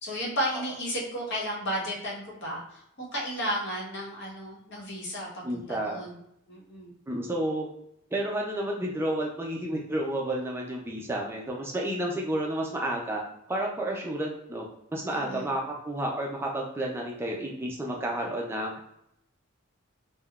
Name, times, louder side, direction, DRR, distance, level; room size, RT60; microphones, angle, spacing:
voice 1, 0.0-6.2 6.5-7.0 15.1-15.5, equal, 55° left, -3 dB, 0.9 m, -33 dB
voice 2, 5.4-6.0 7.1-7.7 8.1-13.2 13.5-14.6 14.9-18.7, right 1 dB, 10° right, -1 dB, 0.3 m, -31 dB
3.6 x 2.1 x 2.3 m, 0.79 s
head